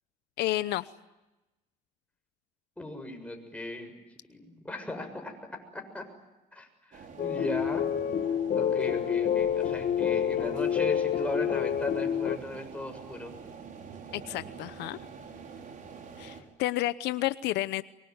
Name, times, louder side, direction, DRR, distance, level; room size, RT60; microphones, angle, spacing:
voice 1, 0.4-0.9 14.1-15.0 16.2-17.8, left 16 dB, 85° left, 14 dB, 0.9 m, -30 dB
voice 2, 2.8-3.9 4.3-5.4 5.7-6.0 6.5-7.9 8.5-13.3, left 1 dB, 5° left, 4 dB, 7.0 m, -37 dB
sound 1, 6.9-16.4, right 6 dB, 55° right, 5.5 m, -46 dB
sound 2, 7.2-12.4, left 9 dB, 55° left, 1.3 m, -28 dB
24.0 x 23.5 x 9.6 m, 1.0 s
cardioid pair, 110°, 17 cm